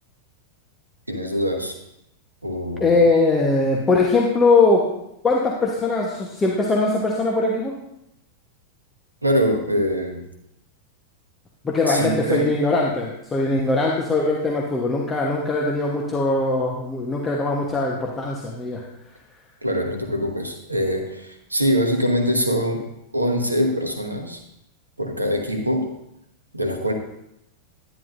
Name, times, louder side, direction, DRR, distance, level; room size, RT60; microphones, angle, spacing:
voice 1, 1.1-1.7 2.4-2.9 9.2-10.2 11.9-12.5 19.6-22.8 23.1-24.4 25.0-25.9 26.5-26.9, equal, 85° right, 4 dB, 1.2 m, -23 dB
voice 2, 2.8-4.9 5.2-7.7 11.6-18.8, left 3 dB, 15° left, -2 dB, 1.1 m, -21 dB
10.5 x 9.9 x 2.6 m, 0.82 s
figure-of-eight pair, 90°, 0 cm